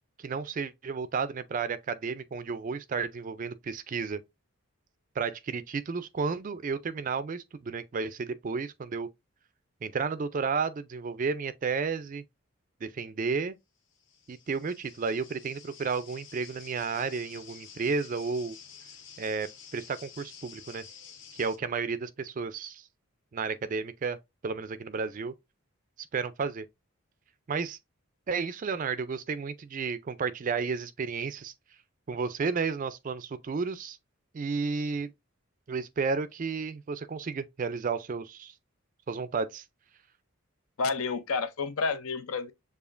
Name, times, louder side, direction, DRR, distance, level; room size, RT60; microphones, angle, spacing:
voice 1, 0.2-4.2 5.2-9.1 9.8-12.2 12.8-13.6 14.3-18.6 19.2-20.8 21.3-22.9 23.3-24.2 24.4-25.3 26.0-26.7 27.5-27.8 28.3-31.5 32.1-34.0 34.3-35.1 35.7-38.5 39.1-39.6, right 5 dB, 35° right, 0.3 m, -32 dB
sound 1, 13.9-21.6, left 7 dB, 55° left, 1.0 m, -50 dB
voice 2, 40.8-42.5, left 4 dB, 75° left, 0.6 m, -30 dB
6.9 x 2.5 x 2.5 m
head